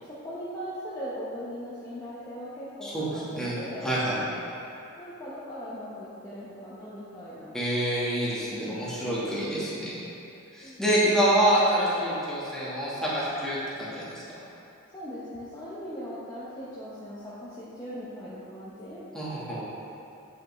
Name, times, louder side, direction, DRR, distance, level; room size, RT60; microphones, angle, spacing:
voice 1, 0.0-3.9 5.0-7.5 10.6-10.8 14.4-14.5 14.9-19.0, equal, 20° left, -10 dB, 0.9 m, -39 dB
voice 2, 3.4-4.2 7.5-9.9 10.5-14.2 19.1-19.6, right 1 dB, 5° left, -9 dB, 1.4 m, -26 dB
8.7 x 5.5 x 3.1 m, 2.7 s
head